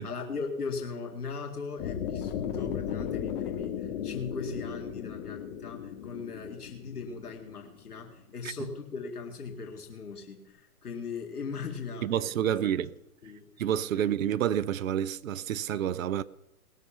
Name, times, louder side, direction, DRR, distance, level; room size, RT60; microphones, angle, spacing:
voice 1, 0.0-12.3 12.6-12.7 13.2-13.5 13.9-14.1, left 5 dB, 85° left, 2.3 m, -39 dB
sound 1, 1.8-7.9, left 9 dB, 40° left, 2.2 m, -36 dB
voice 2, 12.0-12.9 13.6-16.2, right 10 dB, 65° right, 0.7 m, -28 dB
20.0 x 6.7 x 5.8 m
hypercardioid pair, 135°, 44 cm